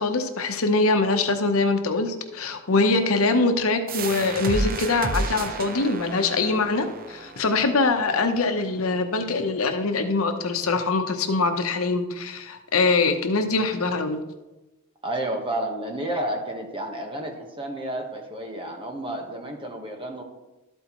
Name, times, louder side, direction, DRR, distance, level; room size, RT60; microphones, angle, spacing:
voice 1, 0.0-14.2, left 3 dB, 80° left, 7 dB, 0.9 m, -23 dB
sound 1, 3.9-9.3, right 2 dB, 45° right, 0.7 m, -32 dB
voice 2, 15.0-20.2, right 1 dB, 25° right, 3 dB, 1.2 m, -31 dB
12.5 x 8.0 x 3.0 m, 1.1 s
head